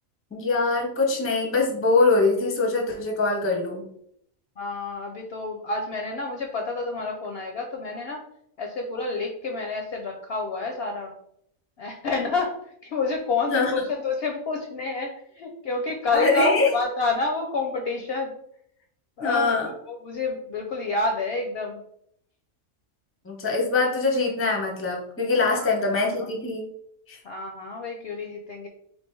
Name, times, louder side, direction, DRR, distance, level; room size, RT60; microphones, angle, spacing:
voice 1, 0.3-3.9 13.5-13.7 16.1-16.7 19.2-19.7 23.2-26.6 27.1-27.2, left 3 dB, 15° left, 1 dB, 0.5 m, -23 dB
voice 2, 4.6-8.2 8.6-11.1 11.8-12.5 12.8-18.3 19.2-19.6 19.9-21.8 25.4-26.1 27.2-28.7, left 3 dB, 65° left, 2 dB, 0.6 m, -29 dB
3.2 x 2.7 x 4.4 m, 0.72 s
omnidirectional pair, 1.4 m